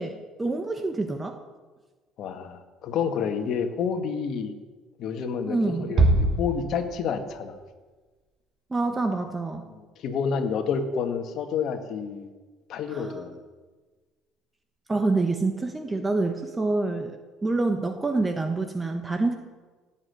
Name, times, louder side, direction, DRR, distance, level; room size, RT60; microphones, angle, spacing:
voice 1, 0.0-1.4 5.5-5.9 8.7-9.7 12.9-13.3 14.9-19.4, right 3 dB, 15° right, 6 dB, 1.2 m, -27 dB
voice 2, 2.2-4.5 5.0-7.6 9.7-12.3 12.7-13.4, left 6 dB, 55° left, 6 dB, 1.9 m, -29 dB
Bass drum, 6.0-7.4, right 2 dB, 45° right, 2.2 m, -23 dB
17.0 x 7.6 x 9.8 m, 1.3 s
cardioid pair, 125°, 0 cm